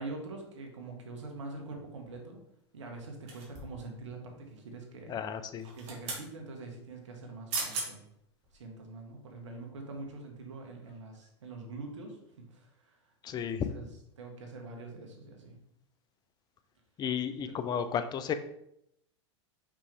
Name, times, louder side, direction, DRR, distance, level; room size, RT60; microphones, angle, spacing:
voice 1, 0.0-2.4 2.7-5.2 5.8-8.0 8.5-13.0 13.4-13.9 14.2-15.5 17.4-17.6, right 3 dB, 80° right, 2 dB, 1.7 m, -44 dB
sound 1, 3.3-3.9 5.6-6.3 7.2-7.3 7.5-7.9 8.4-8.6, right 3 dB, 45° right, 2.2 m, -37 dB
voice 2, 5.1-5.7 13.2-13.7 17.0-18.3, left 8 dB, 25° left, 10 dB, 0.6 m, -33 dB
5.4 x 5.0 x 3.5 m, 0.78 s
hypercardioid pair, 105°, 15 cm